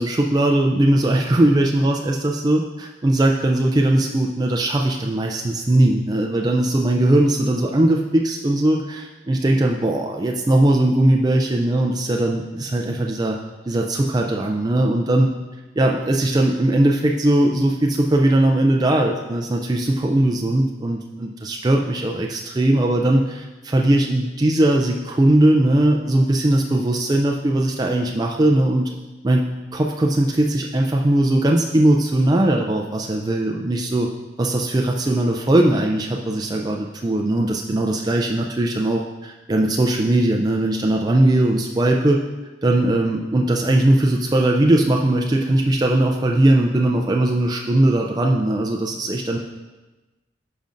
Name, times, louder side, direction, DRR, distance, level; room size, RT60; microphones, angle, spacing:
voice 1, 0.0-13.4 13.7-15.3 15.8-28.9 29.2-34.1 34.4-42.2 42.6-49.4, right 1 dB, 20° right, 0 dB, 0.4 m, -19 dB
10.5 x 5.2 x 2.6 m, 1.1 s
head